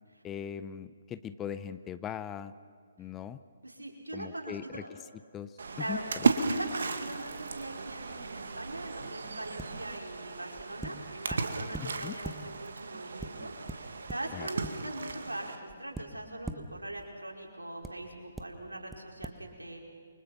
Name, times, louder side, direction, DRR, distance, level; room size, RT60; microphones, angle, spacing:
voice 1, 0.2-2.5 3.0-3.4 4.1-5.0 5.3-6.3 11.8-12.2 14.3-14.5, left 9 dB, 15° left, 13 dB, 0.7 m, -40 dB
voice 2, 3.6-4.9 5.8-6.0 6.4-19.8, right 1 dB, 80° right, 1 dB, 4.9 m, -41 dB
Splash splatter, 5.6-15.6, right 4 dB, 60° right, 2.0 m, -35 dB
sound 1, 9.6-9.9 10.6-12.7 13.2-15.3 15.7-17.0 17.8-17.9 18.3-18.4 18.9-19.0 19.2-19.3, right 2 dB, 5° right, 1.1 m, -43 dB
28.5 x 24.5 x 6.0 m, 2.1 s
figure-of-eight pair, 135°, 0 cm